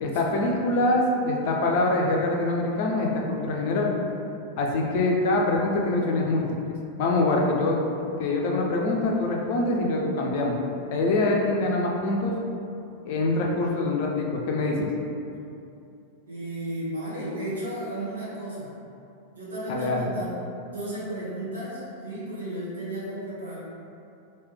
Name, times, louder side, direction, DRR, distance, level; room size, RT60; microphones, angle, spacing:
voice 1, 0.0-3.9 4.6-7.8 8.2-10.6 10.9-12.3 13.0-14.9 19.7-20.1, left 2 dB, 50° left, -1 dB, 0.5 m, -24 dB
voice 2, 16.3-18.7 19.3-23.6, right 1 dB, 65° right, -9 dB, 1.1 m, -34 dB
3.2 x 2.8 x 3.3 m, 2.6 s
figure-of-eight pair, 90°, 0 cm